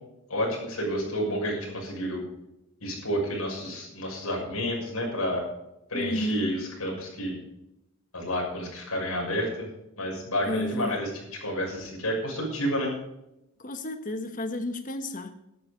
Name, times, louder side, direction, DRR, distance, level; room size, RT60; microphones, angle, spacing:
voice 1, 0.3-2.2 2.8-5.4 5.9-7.4 8.1-9.7 10.0-11.1 11.4-12.9, equal, 80° left, -1 dB, 6.2 m, -30 dB
voice 2, 5.9-6.5 10.5-11.0 13.6-15.3, left 1 dB, 35° left, 8 dB, 1.3 m, -31 dB
12.0 x 11.0 x 5.2 m, 0.87 s
head